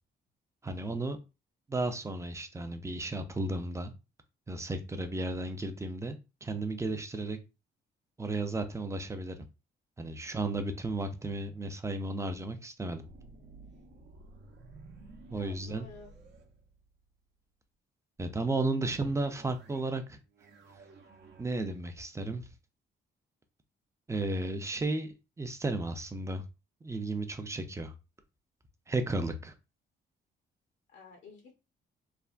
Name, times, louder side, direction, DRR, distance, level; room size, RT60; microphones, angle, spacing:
voice 1, 0.6-1.2 1.7-3.9 4.5-7.4 8.2-9.4 10.0-13.0 15.3-15.9 18.2-20.2 21.4-22.5 24.1-26.4 26.8-27.9 28.9-29.5, right 2 dB, 15° right, 8 dB, 0.5 m, -34 dB
sound 1, 10.3-11.7 13.0-17.2 19.0-20.0 20.3-21.4, right 3 dB, 60° right, 0.7 m, -54 dB
voice 2, 15.3-16.1 30.9-31.5, left 4 dB, 65° left, 2 dB, 0.7 m, -52 dB
3.3 x 2.1 x 2.4 m, 0.28 s
cardioid pair, 90°, 20 cm